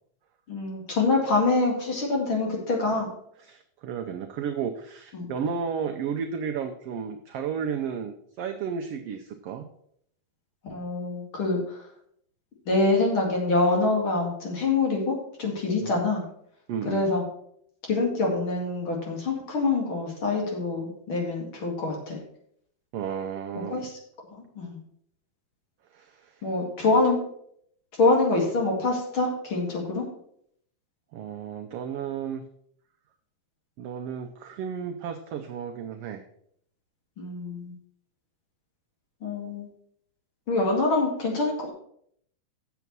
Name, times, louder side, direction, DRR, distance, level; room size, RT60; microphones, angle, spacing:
voice 1, 0.5-3.1 5.1-5.3 10.6-11.8 12.7-16.2 16.8-17.2 17.9-22.2 23.7-23.9 24.6-24.8 26.4-27.2 28.0-30.1 37.2-37.7 39.2-39.7 40.5-41.7, left 3 dB, 45° left, -1 dB, 2.7 m, -25 dB
voice 2, 3.4-9.6 15.8-15.9 16.7-17.1 22.9-23.9 25.9-26.4 31.1-32.4 33.8-36.2, right 7 dB, 80° right, 5 dB, 1.3 m, -33 dB
8.2 x 7.0 x 6.0 m, 0.69 s
omnidirectional pair, 3.6 m